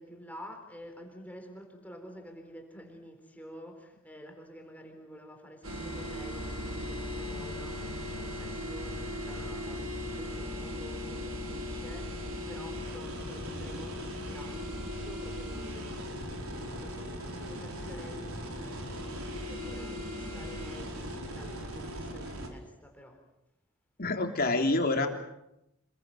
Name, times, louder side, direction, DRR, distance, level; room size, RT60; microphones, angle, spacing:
voice 1, 0.0-12.1 12.5-23.2, equal, 5° left, 3 dB, 4.0 m, -49 dB
sound 1, 5.6-22.5, left 1 dB, 85° right, 5.0 m, -38 dB
voice 2, 24.0-25.1, left 2 dB, 45° left, 4 dB, 3.3 m, -27 dB
27.5 x 22.0 x 7.7 m, 0.87 s
head